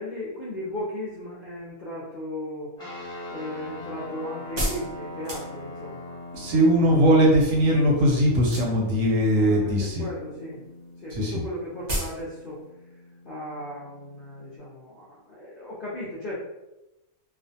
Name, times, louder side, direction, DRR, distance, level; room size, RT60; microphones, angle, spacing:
voice 1, 0.0-3.0 3.3-6.2 7.4-7.5 9.3-10.6 11.0-12.6 13.2-16.4, left 1 dB, 60° left, -7 dB, 0.5 m, -36 dB
sound 1, 2.8-14.6, left 1 dB, 5° left, 0.7 m, -42 dB
sound 2, 2.9-6.0 8.4-9.0 9.3-9.9 10.2-10.3 10.6-10.7 10.9-11.0 11.3-11.4 11.9-12.2 12.5-12.6, right 1 dB, 40° right, 0.7 m, -31 dB
voice 2, 6.3-10.1 11.1-11.4, equal, 70° right, -1 dB, 0.9 m, -20 dB
2.4 x 2.2 x 2.6 m, 0.97 s
omnidirectional pair, 1.5 m